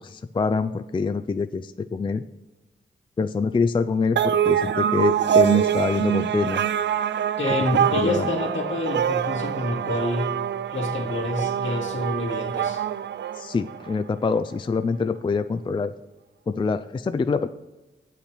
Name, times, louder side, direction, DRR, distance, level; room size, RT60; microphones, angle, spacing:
voice 1, 0.0-2.2 3.2-6.6 7.9-8.3 13.3-15.9 16.5-17.5, left 4 dB, 25° left, 11 dB, 0.4 m, -25 dB
sound 1, 4.2-13.9, right 9 dB, 65° right, 0.4 m, -24 dB
voice 2, 7.4-10.3 10.7-12.8, left 2 dB, 70° left, -2 dB, 2.3 m, -27 dB
8.0 x 5.8 x 4.4 m, 1.1 s
cardioid pair, 60°, 20 cm